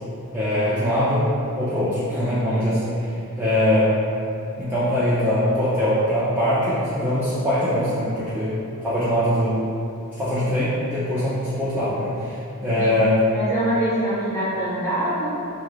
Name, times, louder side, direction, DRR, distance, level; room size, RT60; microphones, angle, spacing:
voice 1, 0.3-1.3 1.6-4.0 4.6-9.6 10.2-13.2, left 1 dB, 10° right, -12 dB, 0.3 m, -22 dB
voice 2, 12.6-12.9 13.3-15.3, right 1 dB, 10° left, -10 dB, 0.7 m, -24 dB
2.6 x 2.4 x 3.3 m, 2.7 s
head